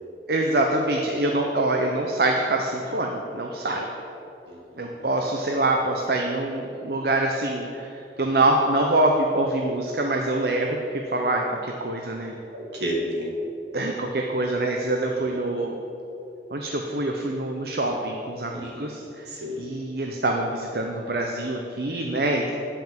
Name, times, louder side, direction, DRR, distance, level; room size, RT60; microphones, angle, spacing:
voice 1, 0.3-3.9 4.8-7.9 8.2-10.8 11.1-12.3 13.7-15.7 16.5-19.2 19.6-22.5, right 2 dB, 55° right, 1 dB, 0.7 m, -25 dB
voice 2, 4.5-4.9 12.5-13.3 15.2-15.7 18.5-19.0 19.3-19.6, equal, 75° right, -2 dB, 2.1 m, -32 dB
9.7 x 5.8 x 7.3 m, 2.9 s
head